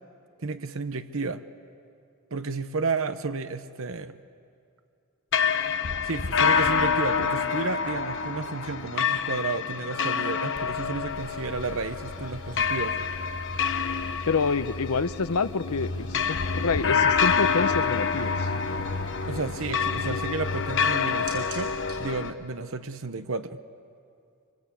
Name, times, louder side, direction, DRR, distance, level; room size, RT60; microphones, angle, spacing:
voice 1, 0.4-1.4 2.3-4.2 6.0-13.0 19.3-21.7 22.0-23.6, right 4 dB, 65° right, 10 dB, 0.9 m, -32 dB
sound 1, 5.3-22.3, left 6 dB, 60° left, 1.1 m, -27 dB
sound 2, 11.1-22.0, right 4 dB, 90° right, 6.3 m, -51 dB
voice 2, 14.3-18.5, left 4 dB, 85° left, 13 dB, 0.8 m, -27 dB
26.0 x 25.0 x 8.4 m, 2.4 s
head